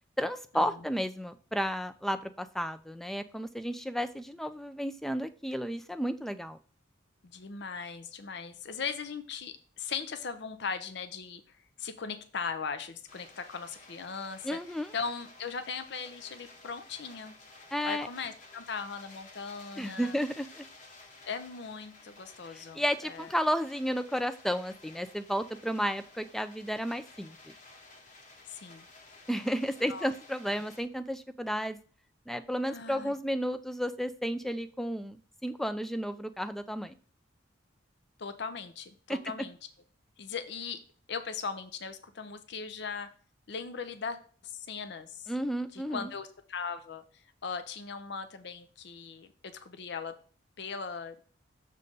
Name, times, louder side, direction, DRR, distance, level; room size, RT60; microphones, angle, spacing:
voice 1, 0.2-6.6 14.4-14.9 17.7-18.1 19.8-20.6 22.5-27.4 29.3-31.8 32.3-36.9 39.1-39.2 45.3-46.1, equal, ahead, 11 dB, 0.3 m, -32 dB
voice 2, 7.2-14.6 14.9-17.4 17.8-20.2 21.2-23.3 28.4-28.8 29.9-30.1 30.5-30.6 32.7-33.1 38.2-39.6 40.2-40.8 41.1-43.1 43.5-45.3 45.7-50.1 50.6-51.2, left 5 dB, 60° left, 10 dB, 0.6 m, -39 dB
sound 1, 13.1-30.8, left 3 dB, 40° left, 1.1 m, -54 dB
6.7 x 3.7 x 5.3 m, 0.42 s
head